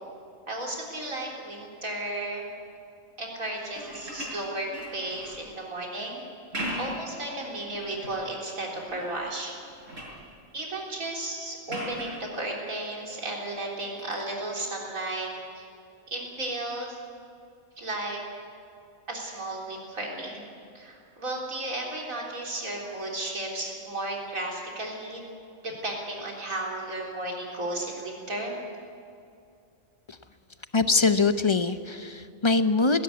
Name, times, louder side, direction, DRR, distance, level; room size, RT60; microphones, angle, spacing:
voice 1, 0.5-2.5 3.2-6.2 6.8-9.6 10.5-15.3 15.6-15.7 16.1-17.0 17.8-18.2 19.1-20.4 20.7-25.2 25.6-28.6, right 2 dB, 90° right, -2 dB, 4.2 m, -34 dB
sound 1, 3.6-5.4 6.3-7.1 7.6-8.2 8.7-9.2 9.5-10.2 11.7-12.2 14.0-14.1, equal, 70° right, 6.4 m, -38 dB
voice 2, 30.7-33.0, left 3 dB, 30° left, 10 dB, 0.6 m, -23 dB
19.0 x 17.0 x 9.6 m, 2.5 s
omnidirectional pair, 1.4 m